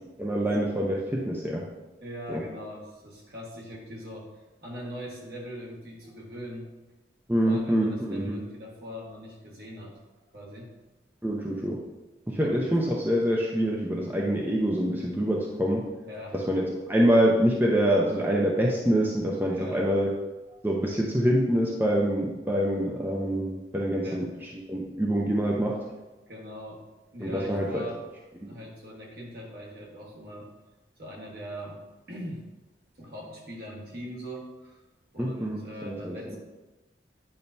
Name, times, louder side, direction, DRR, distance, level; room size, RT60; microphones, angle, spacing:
voice 1, 0.2-1.7 2.3-2.4 7.3-8.4 11.2-11.8 12.3-15.9 16.3-20.1 20.6-25.8 27.2-27.8 35.2-36.4, equal, 10° right, -2 dB, 0.6 m, -25 dB
voice 2, 2.0-4.3 4.6-6.7 7.4-10.0 10.3-10.7 12.4-12.7 16.0-16.5 19.5-19.8 20.5-20.7 24.0-24.2 26.3-26.8 27.1-28.0 28.4-30.5 31.0-31.8 32.1-32.5 33.0-34.8 35.1-36.4, equal, 55° right, -3 dB, 1.5 m, -41 dB
8.9 x 5.6 x 2.7 m, 1.1 s
head